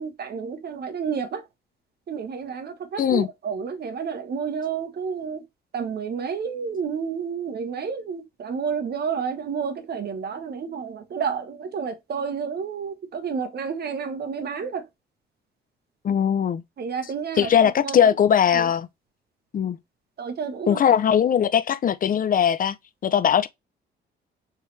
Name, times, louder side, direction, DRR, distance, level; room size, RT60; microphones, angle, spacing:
voice 1, 0.0-1.4 2.1-5.4 5.7-14.8 16.8-17.5 17.8-18.0 18.5-18.7 20.2-20.8, right 6 dB, 55° right, 1.2 m, -30 dB
voice 2, 3.0-3.3 16.0-16.6 17.4-18.9 19.5-19.8 20.7-22.8 23.0-23.5, left 8 dB, 45° left, 0.5 m, -20 dB
4.6 x 3.3 x 3.2 m
cardioid pair, 90°, 20 cm